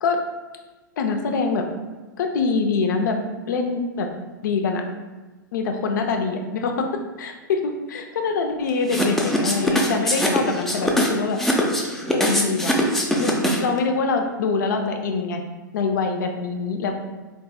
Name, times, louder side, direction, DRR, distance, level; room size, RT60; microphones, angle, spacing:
voice 1, 1.0-1.6 2.2-3.2 3.5-4.1 4.4-4.8 5.5-11.4 12.1-12.7 13.2-13.3 13.6-15.4 15.7-17.0, left 4 dB, 60° left, 4 dB, 0.6 m, -24 dB
sound 1, 8.9-13.8, equal, 5° left, 0.5 m, -22 dB
4.1 x 3.5 x 2.3 m, 1.2 s
figure-of-eight pair, 105°, 11 cm